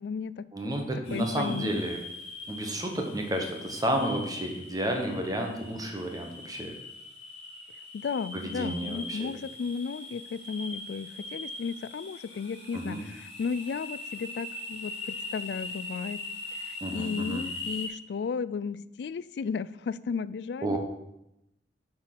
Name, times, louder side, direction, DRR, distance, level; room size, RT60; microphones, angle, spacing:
voice 1, 0.0-0.8 1.1-1.8 7.9-16.3 16.7-20.8, left 5 dB, 70° left, 17 dB, 0.3 m, -34 dB
voice 2, 0.5-2.0 2.5-6.7 8.3-9.3 12.7-13.0 16.8-17.4 20.6-20.8, right 1 dB, 20° right, 3 dB, 1.1 m, -31 dB
sound 1, 1.0-17.9, left 2 dB, 35° left, 2.0 m, -41 dB
8.5 x 4.5 x 5.9 m, 0.85 s
head